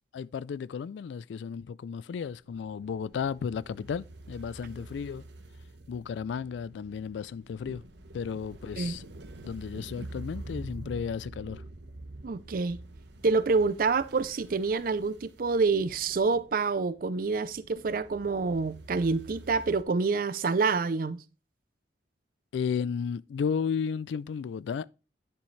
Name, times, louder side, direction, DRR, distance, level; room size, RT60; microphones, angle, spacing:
voice 1, 0.1-5.2 5.9-7.8 8.1-9.1 9.4-11.6 22.5-24.9, left 6 dB, 85° left, 0.3 m, -33 dB
sound 1, 2.2-19.8, right 2 dB, 80° right, 1.1 m, -47 dB
voice 2, 12.2-12.8 13.2-21.2, right 4 dB, 50° right, 0.5 m, -27 dB
9.7 x 7.0 x 3.2 m
head